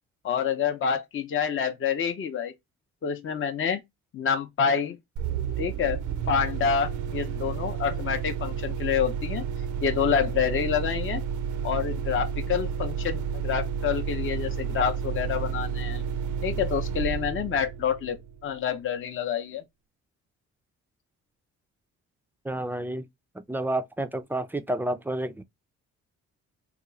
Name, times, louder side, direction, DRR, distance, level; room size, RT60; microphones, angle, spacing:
voice 1, 0.2-2.5 3.0-3.8 4.1-5.0 5.6-6.0 6.3-9.4 9.8-11.2 11.6-16.0 16.4-19.6, left 7 dB, 40° left, 0.6 m, -27 dB
sound 1, 5.2-18.6, right 7 dB, 75° right, 0.5 m, -31 dB
voice 2, 22.4-23.1 23.5-25.4, right 1 dB, 5° right, 0.3 m, -30 dB
2.9 x 2.3 x 3.7 m
cardioid pair, 90°, 30 cm